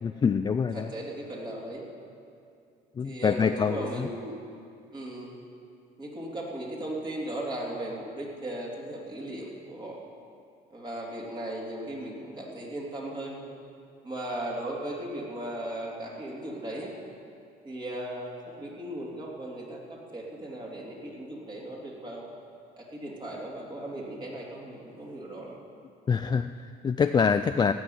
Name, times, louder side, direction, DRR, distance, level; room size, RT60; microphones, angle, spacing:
voice 1, 0.0-0.9 3.0-4.1 26.1-27.7, left 6 dB, 25° left, 8 dB, 0.3 m, -25 dB
voice 2, 0.7-1.8 3.0-4.4 4.9-5.3 6.0-10.0 10.7-13.5 14.0-16.9 17.6-22.3 22.8-25.6, right 1 dB, 25° right, -3 dB, 3.2 m, -37 dB
16.0 x 6.2 x 9.4 m, 2.5 s
cardioid pair, 110°, 17 cm